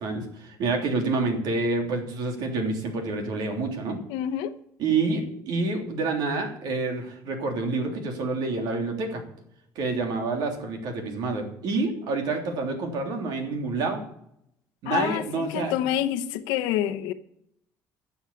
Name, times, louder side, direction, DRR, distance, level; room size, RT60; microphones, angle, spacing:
voice 1, 0.0-4.0 4.8-9.2 9.7-14.0 14.8-15.7, right 3 dB, 75° right, 3 dB, 3.3 m, -28 dB
voice 2, 4.1-4.5 14.9-17.1, left 11 dB, 90° left, 9 dB, 1.0 m, -27 dB
12.0 x 7.3 x 8.5 m, 0.73 s
supercardioid pair, 90°, 7 cm